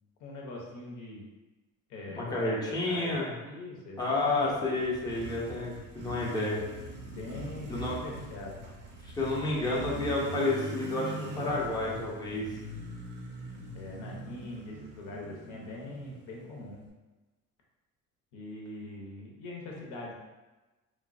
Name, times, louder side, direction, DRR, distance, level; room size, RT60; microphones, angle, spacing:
voice 1, 0.2-1.3 1.9-4.7 7.1-8.6 13.7-16.8 18.3-20.1, left 2 dB, 75° left, -1 dB, 0.7 m, -42 dB
voice 2, 2.2-3.3 4.0-6.6 7.7-8.0 9.2-12.5, left 2 dB, 15° left, -4 dB, 0.5 m, -30 dB
Motorcycle, 4.2-16.9, right 2 dB, 40° right, 0.5 m, -42 dB
3.0 x 2.0 x 2.4 m, 1.1 s
cardioid pair, 120°, 30 cm